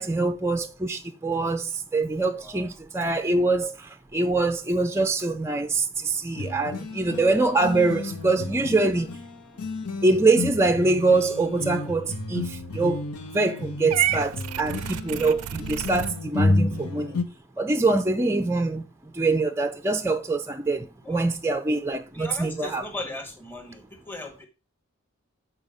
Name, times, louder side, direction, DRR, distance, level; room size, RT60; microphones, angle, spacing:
voice 1, 0.0-9.1 10.0-13.0 13.3-17.2 17.6-18.9 19.1-22.8, right 3 dB, 10° right, 0.4 m, -24 dB
voice 2, 2.4-2.7 21.0-21.3 22.1-24.5, left 2 dB, 10° left, 1.2 m, -38 dB
sound 1, 6.4-17.2, left 2 dB, 90° left, 0.9 m, -31 dB
Purr / Meow, 13.9-16.1, right 11 dB, 85° right, 0.4 m, -29 dB
7.3 x 4.4 x 5.0 m
head